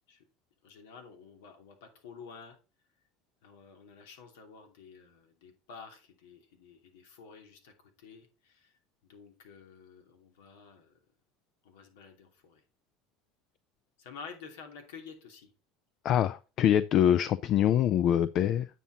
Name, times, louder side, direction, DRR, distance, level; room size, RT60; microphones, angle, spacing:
voice 1, 0.6-2.6 3.4-8.7 9.0-10.9 11.6-12.6 14.0-15.5, left 5 dB, 85° left, 2.7 m, -50 dB
voice 2, 16.0-18.7, left 10 dB, 50° left, 0.5 m, -24 dB
9.1 x 5.9 x 4.0 m
supercardioid pair, 105°, 0 cm